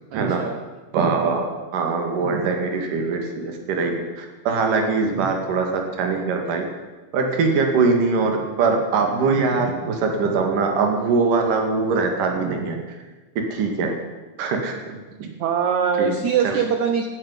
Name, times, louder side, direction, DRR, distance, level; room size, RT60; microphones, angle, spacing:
voice 1, 0.1-0.6 15.4-17.1, right 7 dB, 80° right, 6 dB, 1.7 m, -22 dB
voice 2, 0.9-1.5 1.7-6.7 7.1-12.8 13.5-13.9 14.4-15.3 16.0-16.2 16.4-16.6, right 4 dB, 60° right, 3 dB, 3.5 m, -22 dB
12.0 x 9.9 x 9.9 m, 1.2 s
omnidirectional pair, 4.5 m